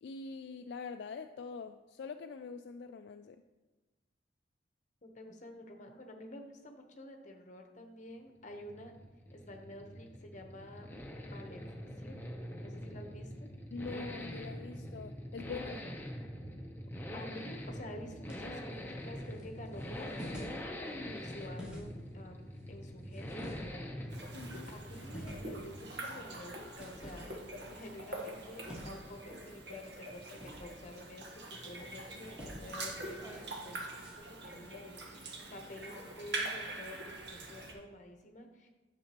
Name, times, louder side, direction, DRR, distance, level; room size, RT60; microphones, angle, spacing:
voice 1, 0.0-3.4 13.7-15.8 24.3-24.7, left 4 dB, 65° left, 8 dB, 0.3 m, -44 dB
voice 2, 5.0-8.9 9.3-10.9 11.3-12.2 12.6-13.5 17.1-24.3 24.7-38.7, left 1 dB, 40° left, 3 dB, 1.0 m, -50 dB
sound 1, 8.3-26.3, equal, 10° left, 0.7 m, -44 dB
sound 2, 17.3-34.2, equal, 5° right, 2.1 m, -52 dB
sound 3, 24.1-37.7, right 2 dB, 65° right, 1.4 m, -44 dB
10.0 x 6.9 x 3.0 m, 1.2 s
head